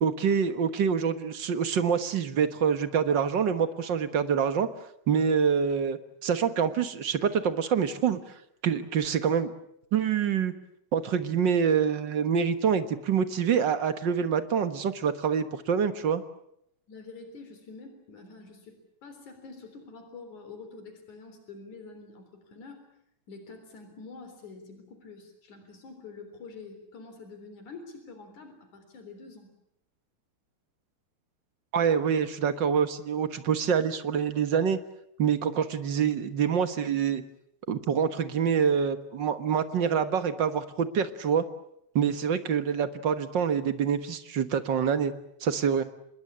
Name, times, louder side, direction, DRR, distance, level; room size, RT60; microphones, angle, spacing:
voice 1, 0.0-4.7 5.1-8.2 8.6-9.5 9.9-10.5 10.9-16.2 31.7-34.8 35.2-37.2 37.7-41.4 41.9-45.1 45.4-45.8, right 7 dB, 50° right, 10 dB, 1.7 m, -26 dB
voice 2, 16.9-22.8 23.3-29.5, left 4 dB, 80° left, 7 dB, 5.1 m, -46 dB
26.5 x 21.0 x 8.6 m, 0.74 s
omnidirectional pair, 3.4 m